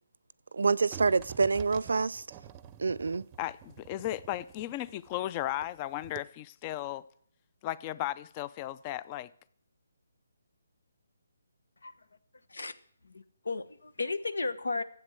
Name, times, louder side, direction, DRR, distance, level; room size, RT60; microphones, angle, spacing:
voice 1, 0.5-2.2 2.8-3.2, right 4 dB, 75° right, 0.5 m, -27 dB
sound 1, 0.9-5.8 6.0-6.2, right 10 dB, 20° right, 0.7 m, -48 dB
voice 2, 3.4-7.1 7.6-9.3, left 14 dB, 25° left, 0.5 m, -35 dB
voice 3, 13.0-14.8, left 3 dB, 85° left, 1.2 m, -34 dB
13.0 x 8.2 x 7.9 m
hypercardioid pair, 155°, 0 cm